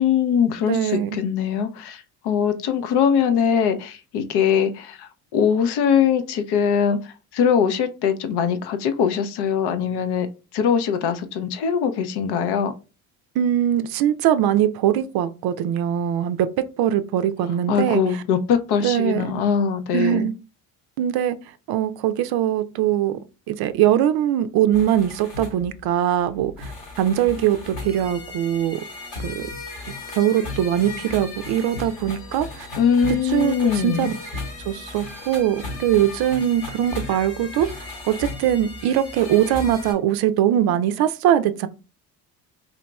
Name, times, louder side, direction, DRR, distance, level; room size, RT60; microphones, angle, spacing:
voice 1, 0.0-10.3 10.5-12.7 17.7-20.3 32.8-34.1, left 7 dB, 60° left, 0.7 m, -22 dB
voice 2, 0.7-1.2 13.4-18.2 18.8-19.3 19.9-20.4 21.0-21.4 21.7-23.2 23.5-26.7 27.0-28.8 29.2-29.5 30.1-32.7 33.2-34.1 34.7-41.7, right 11 dB, 55° right, 0.5 m, -21 dB
sound 1, 24.7-39.9, left 3 dB, 85° left, 1.8 m, -36 dB
3.8 x 2.8 x 2.3 m
hypercardioid pair, 65°, 45 cm